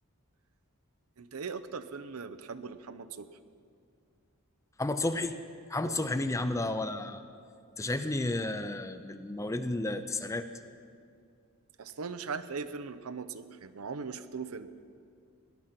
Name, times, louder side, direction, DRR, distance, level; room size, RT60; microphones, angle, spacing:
voice 1, 1.2-3.3 5.8-6.0 11.8-14.7, right 5 dB, 80° right, 12 dB, 0.7 m, -39 dB
voice 2, 4.8-5.3 5.7-7.2 7.8-10.5, left 2 dB, 15° left, 10 dB, 0.5 m, -32 dB
18.0 x 11.0 x 5.9 m, 2.3 s
head